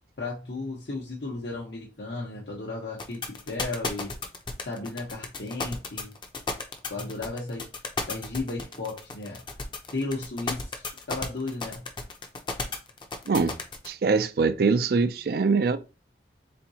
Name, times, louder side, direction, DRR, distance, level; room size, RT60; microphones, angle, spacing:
voice 1, 0.2-4.1 4.6-6.1 6.9-7.7 8.1-9.4 9.9-11.8, left 3 dB, 75° left, 1.0 m, -34 dB
sound 1, 3.0-13.9, left 3 dB, 25° left, 0.6 m, -33 dB
voice 2, 13.3-13.6 13.8-15.8, right 4 dB, 60° right, 0.4 m, -23 dB
4.3 x 3.6 x 2.8 m
head